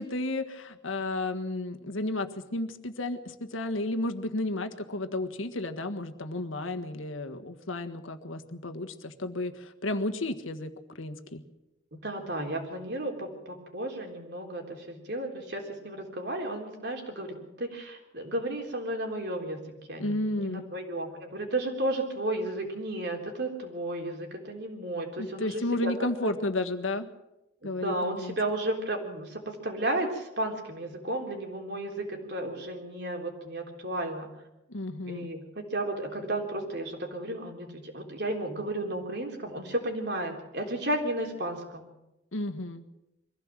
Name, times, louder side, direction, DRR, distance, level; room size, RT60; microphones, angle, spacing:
voice 1, 0.0-11.4 20.0-20.6 25.2-27.1 27.6-28.4 34.7-35.3 42.3-42.8, left 2 dB, 85° left, 6 dB, 1.6 m, -32 dB
voice 2, 11.9-25.9 26.2-26.3 27.6-34.3 35.0-41.9, right 1 dB, 55° right, 2 dB, 3.7 m, -33 dB
23.5 x 15.5 x 7.6 m, 0.95 s
head